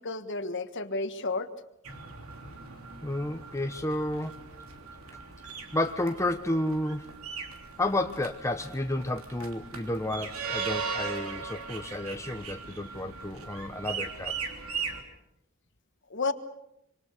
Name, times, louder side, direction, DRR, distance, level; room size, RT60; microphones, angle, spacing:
voice 1, 0.0-1.5 16.1-16.3, left 3 dB, 60° left, 10 dB, 1.5 m, -31 dB
sound 1, 1.8-15.0, right 5 dB, 85° right, 3.3 m, -39 dB
voice 2, 3.0-4.4 5.7-7.1 7.8-14.3, left 1 dB, 15° left, 6 dB, 1.0 m, -31 dB
26.0 x 25.5 x 6.6 m, 0.83 s
head